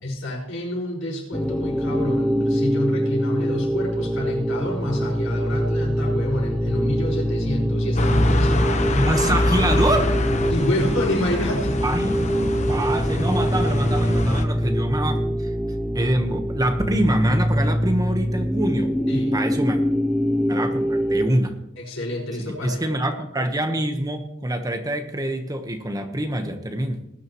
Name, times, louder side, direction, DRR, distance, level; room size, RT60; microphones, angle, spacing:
voice 1, 0.0-9.0 10.5-11.7 19.1-19.4 21.8-23.2, left 1 dB, 80° left, -1 dB, 5.5 m, -28 dB
sound 1, 1.3-21.3, equal, 5° left, 0.6 m, -24 dB
sound 2, 8.0-14.4, left 1 dB, 35° left, 1.1 m, -24 dB
voice 2, 8.9-10.2 11.8-12.1 12.4-15.5 15.9-19.8 20.5-21.6 22.4-27.0, right 1 dB, 20° right, 6 dB, 1.2 m, -25 dB
19.5 x 10.5 x 3.1 m, 0.79 s
head